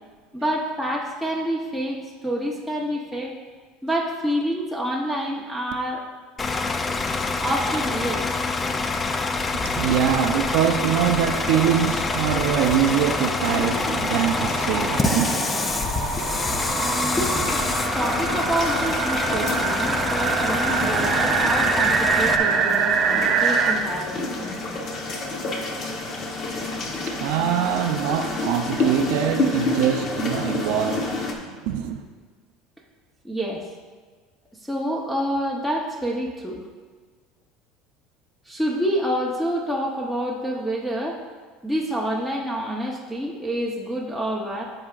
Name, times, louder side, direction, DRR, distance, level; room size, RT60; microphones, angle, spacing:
voice 1, 0.3-3.3 3.8-6.0 7.4-8.3 9.6-9.9 16.1-17.5 17.9-24.4 33.2-33.6 34.6-36.6 38.5-41.2 41.6-44.6, equal, ahead, 0.8 m, -28 dB
Bus / Idling, 6.4-22.4, left 3 dB, 20° left, 0.4 m, -26 dB
sound 1, 8.1-8.2 8.4-8.5 8.8-23.7, right 6 dB, 40° right, 0.7 m, -26 dB
voice 2, 9.4-15.4 26.7-31.2 31.6-32.0, right 9 dB, 75° right, 0.5 m, -24 dB
sound 2, 12.3-31.3, left 2 dB, 40° left, 1.0 m, -30 dB
13.5 x 5.0 x 2.4 m
supercardioid pair, 130°, 0 cm